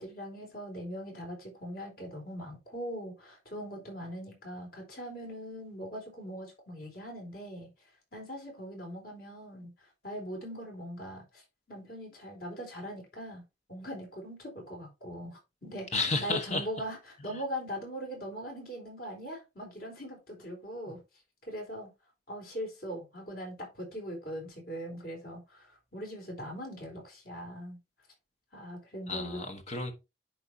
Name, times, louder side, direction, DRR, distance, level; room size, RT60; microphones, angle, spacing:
voice 1, 0.0-7.7 8.1-9.7 10.0-11.4 11.7-13.4 13.7-15.9 16.2-17.0 17.2-21.0 21.5-21.9 22.3-27.8 28.5-29.4, equal, 55° left, 4.2 m, -41 dB
voice 2, 15.9-16.7 17.2-17.4 20.9-21.0 29.1-29.9, left 3 dB, 40° left, 1.0 m, -32 dB
10.5 x 4.8 x 2.8 m
head